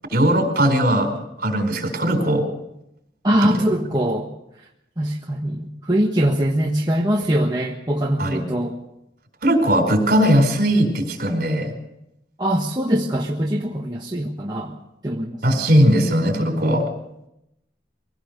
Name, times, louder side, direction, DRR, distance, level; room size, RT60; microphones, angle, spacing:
voice 1, 0.1-2.5 3.4-3.6 8.2-8.4 9.4-11.7 15.4-16.8, equal, 50° right, 5 dB, 4.5 m, -19 dB
voice 2, 3.2-4.3 4.6-4.7 5.0-8.8 12.4-14.7 15.0-15.6, right 1 dB, 20° right, -2 dB, 1.4 m, -22 dB
23.0 x 17.5 x 6.6 m, 0.85 s
head